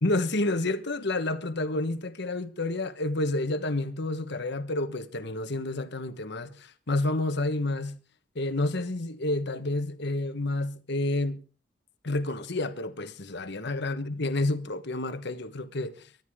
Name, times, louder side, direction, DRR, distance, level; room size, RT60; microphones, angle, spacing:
voice 1, 0.0-8.0 8.3-11.4 12.0-16.1, left 2 dB, 60° left, 1.3 m, -29 dB
24.0 x 11.0 x 3.7 m
head